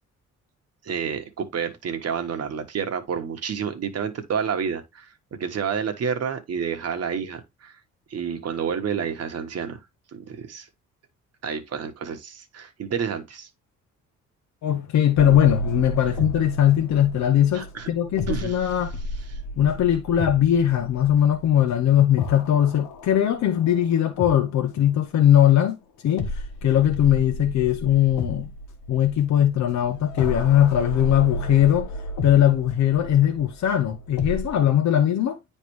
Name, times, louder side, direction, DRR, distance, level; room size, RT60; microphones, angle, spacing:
voice 1, 0.8-5.1 5.4-7.7 8.1-9.8 10.1-10.7 11.4-13.5 17.5-17.9 18.3-18.7 19.3-19.4, right 7 dB, 55° right, 1.3 m, -29 dB
voice 2, 14.6-18.9 19.6-25.8 26.0-28.5 28.9-31.9 32.2-35.4, left 11 dB, 65° left, 0.7 m, -20 dB
sound 1, 15.2-25.0 26.2-34.6, left 1 dB, 85° left, 1.2 m, -33 dB
9.4 x 3.3 x 3.1 m
cardioid pair, 90°, 30 cm